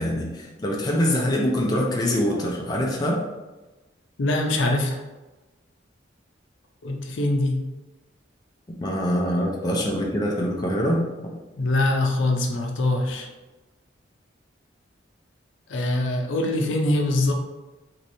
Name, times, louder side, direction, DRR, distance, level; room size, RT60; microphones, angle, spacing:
voice 1, 0.0-3.2 8.8-11.0, equal, 20° left, -2 dB, 0.4 m, -24 dB
voice 2, 4.2-5.0 6.8-7.6 11.6-13.3 15.7-17.3, left 2 dB, 80° left, 3 dB, 0.5 m, -23 dB
3.0 x 2.9 x 2.6 m, 1.1 s
head